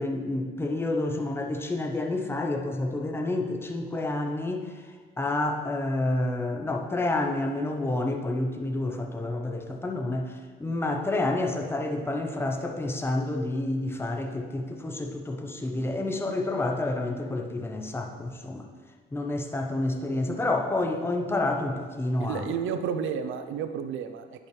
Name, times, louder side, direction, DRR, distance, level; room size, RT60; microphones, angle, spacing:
voice 1, 0.0-4.7 5.2-18.7 19.1-22.5, left 2 dB, 10° left, 3 dB, 0.8 m, -29 dB
voice 2, 22.2-24.3, right 7 dB, 85° right, 9 dB, 0.6 m, -31 dB
10.5 x 5.5 x 3.3 m, 1.5 s
cardioid pair, 90°, 20 cm